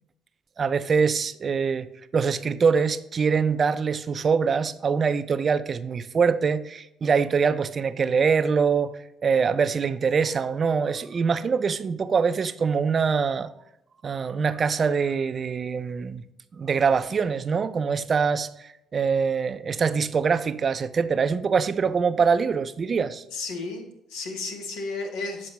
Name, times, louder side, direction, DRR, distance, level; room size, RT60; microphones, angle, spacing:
voice 1, 0.6-8.9 9.2-13.5 14.0-16.2 16.5-23.2, right 5 dB, 45° right, 0.4 m, -24 dB
voice 2, 23.3-25.5, left 3 dB, 80° left, 1.1 m, -33 dB
7.3 x 4.4 x 3.1 m
supercardioid pair, 65°, 0 cm